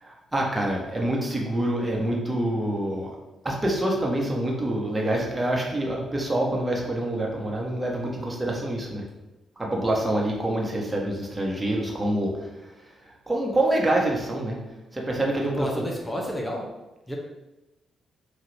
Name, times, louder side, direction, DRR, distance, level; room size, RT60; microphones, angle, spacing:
voice 1, 0.0-3.1 3.4-9.0 9.6-12.5 13.0-14.6 14.9-15.7, right 1 dB, 20° right, -1 dB, 1.3 m, -26 dB
voice 2, 15.5-16.7 17.1-17.2, equal, 20° left, -1 dB, 0.9 m, -30 dB
5.7 x 2.6 x 3.4 m, 0.99 s
hypercardioid pair, 40°, 0 cm